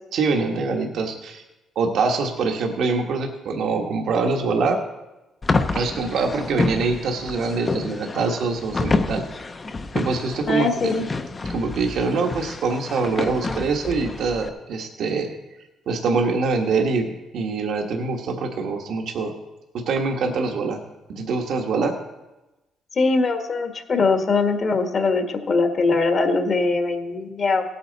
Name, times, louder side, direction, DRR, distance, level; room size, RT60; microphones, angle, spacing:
voice 1, 0.1-1.4 1.7-4.8 5.7-9.2 9.9-10.9 11.5-15.3 15.9-19.3 19.9-20.8 21.1-21.9, right 4 dB, 70° right, 2 dB, 1.4 m, -24 dB
sound 1, 5.4-14.5, left 3 dB, 25° left, 0.7 m, -28 dB
voice 2, 10.5-11.0 22.9-27.6, left 3 dB, 45° left, 5 dB, 1.5 m, -21 dB
17.0 x 8.6 x 4.1 m, 1.0 s
cardioid pair, 110°, 0 cm